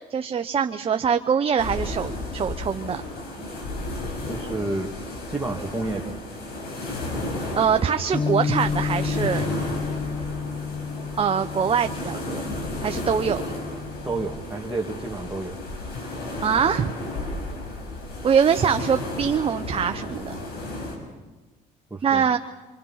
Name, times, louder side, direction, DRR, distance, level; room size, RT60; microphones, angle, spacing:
voice 1, 0.1-3.0 7.6-9.5 11.2-12.4 12.8-13.4 16.4-16.9 18.2-20.3 22.0-22.4, right 7 dB, 35° right, 7 dB, 0.9 m, -23 dB
sound 1, 1.6-21.0, left 1 dB, 80° left, 6.5 m, -33 dB
voice 2, 4.0-5.0 5.3-6.2 14.0-15.6 21.9-22.3, right 2 dB, 10° right, -2 dB, 2.4 m, -30 dB
Bass guitar, 8.1-14.4, left 5 dB, 25° left, 0.8 m, -31 dB
27.5 x 26.0 x 5.8 m, 1.2 s
supercardioid pair, 85°, 16 cm